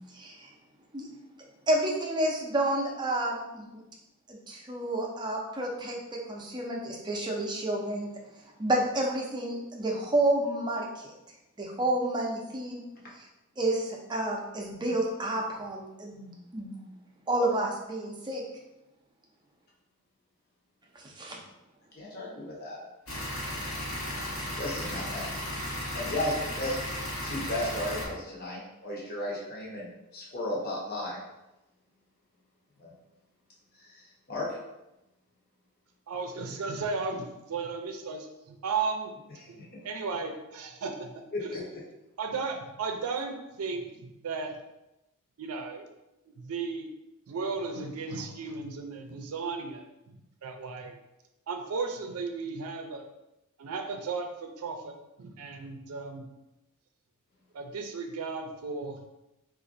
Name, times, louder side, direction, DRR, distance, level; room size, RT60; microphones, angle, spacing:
voice 1, 0.1-0.5 0.9-1.1 1.7-3.8 4.3-8.1 8.6-11.0 11.6-12.8 13.2-13.3 13.6-16.7 17.3-18.4 20.9-21.4, right 1 dB, 20° right, -1 dB, 0.5 m, -30 dB
voice 2, 22.0-22.8 23.8-25.3 25.5-26.8 27.2-31.2 32.8-32.9 33.8-34.0 34.3-34.5 41.5-41.6, left 1 dB, 45° left, -5 dB, 0.9 m, -35 dB
sound 1, 23.1-28.1, left 1 dB, 70° left, 1.1 m, -35 dB
voice 3, 36.1-39.1 39.5-41.1 41.4-41.5 42.2-44.5 45.4-45.9 46.4-46.9 47.3-50.9 51.5-53.1 53.6-54.9 55.2-56.3 57.5-59.0, right 4 dB, 80° right, 4 dB, 0.5 m, -35 dB
4.0 x 2.5 x 2.5 m, 0.93 s
head